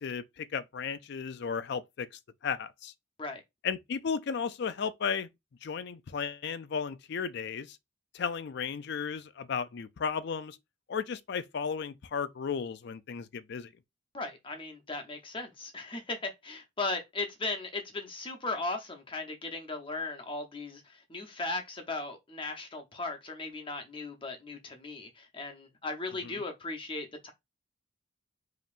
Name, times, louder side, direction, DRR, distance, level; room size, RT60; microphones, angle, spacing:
voice 1, 0.0-2.1 2.4-2.9 3.6-5.3 5.6-7.8 8.1-10.6 10.9-13.7, left 6 dB, 55° left, 0.4 m, -34 dB
voice 2, 14.1-27.3, left 3 dB, 25° left, 0.8 m, -37 dB
5.3 x 2.9 x 2.5 m
head